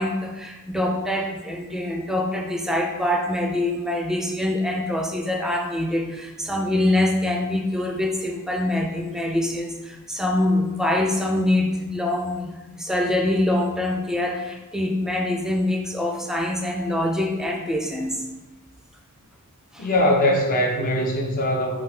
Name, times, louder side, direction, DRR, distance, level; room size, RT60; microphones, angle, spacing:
voice 1, 0.0-18.2 19.7-19.9, left 1 dB, ahead, 2 dB, 0.4 m, -24 dB
voice 2, 19.8-21.8, left 1 dB, 40° left, -1 dB, 0.8 m, -21 dB
5.3 x 2.9 x 3.2 m, 1.1 s
head